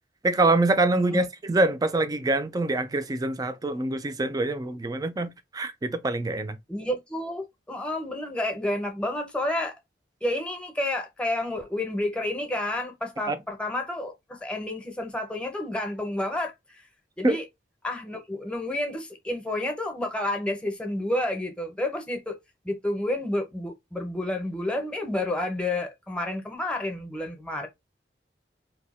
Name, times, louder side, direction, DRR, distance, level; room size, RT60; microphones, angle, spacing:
voice 1, 0.2-6.6 13.3-13.4 17.2-17.4, right 2 dB, 20° right, 0.4 m, -25 dB
voice 2, 6.7-9.7 10.2-16.8 17.2-17.4 17.8-22.4 22.6-27.7, left 1 dB, 5° left, 0.7 m, -30 dB
2.7 x 2.2 x 4.1 m
head